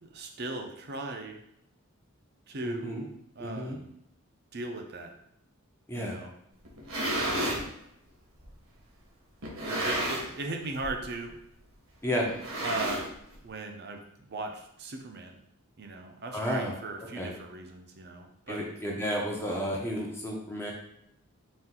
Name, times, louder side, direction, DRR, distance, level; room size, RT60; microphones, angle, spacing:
voice 1, 0.0-1.4 2.5-3.9 4.5-5.1 6.0-6.3 7.2-7.7 9.7-11.3 12.6-13.1 13.4-15.4 15.8-18.7, right 2 dB, 50° right, 3 dB, 0.6 m, -38 dB
voice 2, 2.6-3.0 3.4-3.8 5.9-6.2 12.0-12.3 16.3-16.7 17.2-17.3 18.5-20.7, equal, 10° left, -2 dB, 0.6 m, -32 dB
sound 1, 6.6-7.7 8.4-8.5 9.4-10.4 10.7-11.0 11.3-11.4 12.3-13.4, right 1 dB, 70° right, 1.1 m, -31 dB
4.2 x 2.5 x 3.7 m, 0.76 s
head